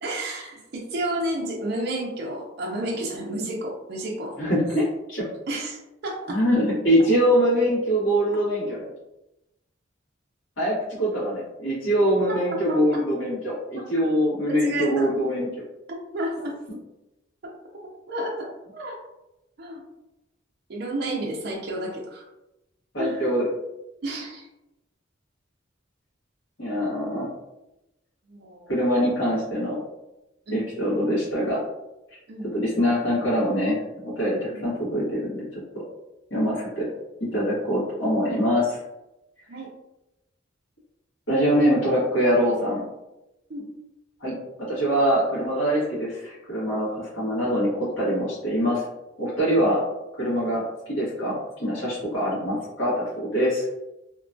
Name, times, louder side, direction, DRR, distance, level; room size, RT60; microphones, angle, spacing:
voice 1, 0.0-4.4 5.5-5.8 6.0-6.4 12.3-13.0 14.5-15.1 15.9-16.6 17.4-17.5 18.1-19.0 19.6-19.8 20.7-22.3 23.0-23.3 24.0-24.5 28.3-28.7 30.5-30.7 32.3-32.5 34.5-34.7 39.5-39.7 43.5-43.7 49.6-49.7, right 1 dB, 55° right, -1 dB, 0.5 m, -31 dB
voice 2, 4.4-5.3 6.3-8.8 10.6-15.5 22.9-23.5 26.6-27.3 28.7-29.8 30.5-31.6 32.5-35.5 36.3-36.9 37.2-38.8 41.3-42.8 44.2-44.3 44.7-48.8 49.2-49.8 50.2-53.7, equal, 75° left, -8 dB, 1.3 m, -23 dB
2.9 x 2.2 x 2.5 m, 0.94 s
head